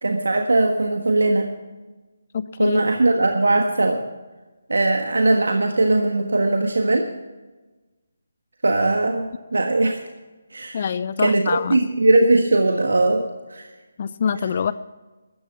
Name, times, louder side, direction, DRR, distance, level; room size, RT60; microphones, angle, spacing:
voice 1, 0.0-1.5 2.6-4.0 4.7-7.1 8.6-10.0 10.5-10.9 11.2-13.2 13.5-13.7, right 2 dB, 80° right, 4 dB, 1.5 m, -19 dB
voice 2, 2.3-2.8 10.7-11.8 14.0-14.7, left 7 dB, 40° left, 15 dB, 0.5 m, -25 dB
13.5 x 10.5 x 7.2 m, 1.2 s
figure-of-eight pair, 160°, 0 cm